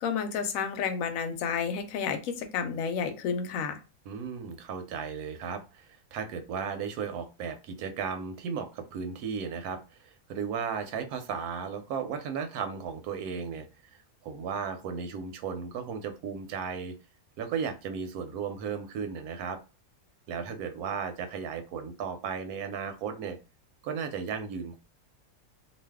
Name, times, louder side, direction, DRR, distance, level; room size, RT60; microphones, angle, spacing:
voice 1, 0.0-3.8, left 6 dB, 70° left, 7 dB, 0.9 m, -31 dB
voice 2, 4.1-16.9 17.4-19.6 20.3-23.4 23.8-24.8, right 6 dB, 85° right, 7 dB, 1.1 m, -35 dB
2.5 x 2.3 x 3.4 m, 0.31 s
omnidirectional pair, 1.5 m